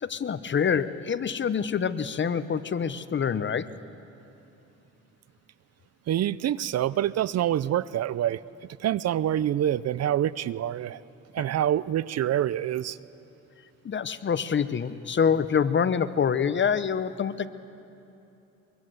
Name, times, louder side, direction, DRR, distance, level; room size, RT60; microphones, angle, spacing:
voice 1, 0.0-3.7 13.8-17.5, left 7 dB, 40° left, 14 dB, 0.9 m, -26 dB
voice 2, 6.1-8.4 8.8-11.0 11.3-13.0, right 11 dB, 55° right, 19 dB, 0.6 m, -26 dB
23.5 x 23.0 x 7.9 m, 2.9 s
cardioid pair, 90°, 30 cm